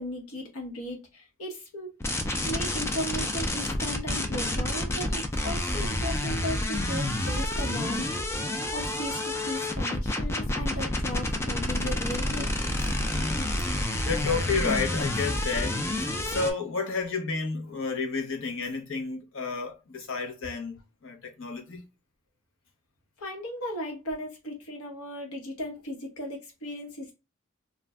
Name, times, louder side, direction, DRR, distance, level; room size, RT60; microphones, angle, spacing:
voice 1, 0.0-1.9 2.4-12.5 23.2-27.1, equal, 80° left, 1.0 m, -36 dB
sound 1, 2.0-16.5, left 1 dB, 10° left, 0.3 m, -29 dB
voice 2, 13.1-21.9, left 4 dB, 60° left, 0.7 m, -31 dB
2.4 x 2.1 x 3.4 m
head